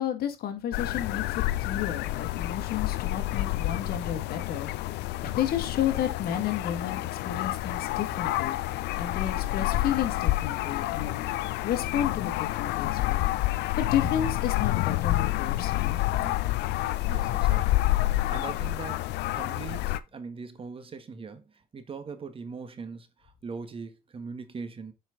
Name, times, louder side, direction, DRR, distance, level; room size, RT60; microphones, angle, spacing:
voice 1, 0.0-4.9 5.2-11.2 11.6-13.2 13.5-16.0, left 10 dB, 65° left, 1.9 m, -32 dB
sound 1, 0.7-20.0, left 16 dB, 85° left, 0.6 m, -28 dB
voice 2, 17.1-24.9, right 5 dB, 35° right, 1.5 m, -41 dB
7.8 x 5.9 x 3.8 m
cardioid pair, 110°, 17 cm